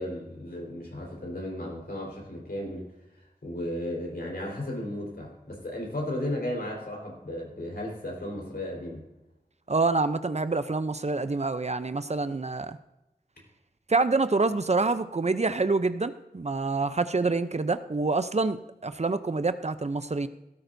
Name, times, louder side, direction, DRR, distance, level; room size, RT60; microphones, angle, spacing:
voice 1, 0.0-2.8 3.4-9.0, left 1 dB, 80° left, -2 dB, 4.4 m, -34 dB
voice 2, 9.7-12.8 13.9-20.3, right 3 dB, 45° right, 11 dB, 0.6 m, -27 dB
17.0 x 13.5 x 2.7 m, 0.94 s
wide cardioid pair, 60°, 16 cm